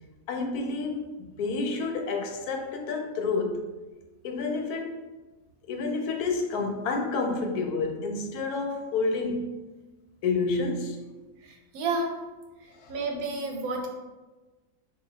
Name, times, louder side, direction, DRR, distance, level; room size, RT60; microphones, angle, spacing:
voice 1, 0.3-3.6 4.2-4.9 5.7-9.6 10.2-11.0 12.8-12.9, left 3 dB, 85° left, 3 dB, 1.1 m, -29 dB
voice 2, 11.4-12.1 12.6-13.9, right 3 dB, 80° right, 2 dB, 1.1 m, -31 dB
2.8 x 2.6 x 3.8 m, 1.2 s
omnidirectional pair, 1.6 m